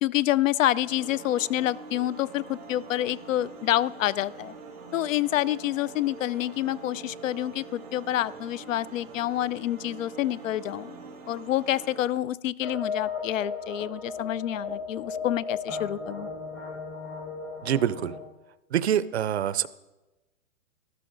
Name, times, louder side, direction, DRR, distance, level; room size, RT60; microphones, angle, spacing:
voice 1, 0.0-4.5 4.9-11.0 11.3-16.3, left 13 dB, 70° left, 22 dB, 0.5 m, -28 dB
sound 1, 0.8-12.1, right 4 dB, 10° right, 0.6 m, -45 dB
sound 2, 12.6-18.2, left 4 dB, 15° left, 1.0 m, -35 dB
voice 2, 17.6-18.1 18.7-19.7, right 10 dB, 55° right, 17 dB, 0.5 m, -25 dB
13.5 x 13.0 x 3.8 m, 1.1 s
hypercardioid pair, 180°, 40 cm